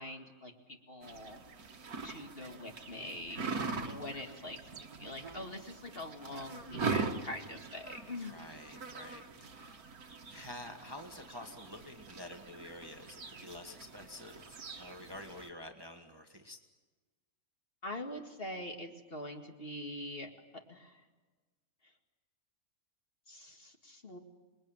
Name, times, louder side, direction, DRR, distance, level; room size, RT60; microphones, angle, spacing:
voice 1, 0.0-1.4 2.0-3.4 3.8-4.6 5.0-8.4 17.8-20.3 20.7-21.0 23.3-24.2, left 1 dB, 40° left, 3 dB, 2.3 m, -44 dB
sound 1, 1.0-15.5, right 4 dB, 70° right, 2.1 m, -42 dB
voice 2, 3.8-4.2 8.3-9.8 10.3-16.6, left 1 dB, 15° right, 4 dB, 1.6 m, -49 dB
27.0 x 21.5 x 9.1 m, 1.3 s
omnidirectional pair, 1.6 m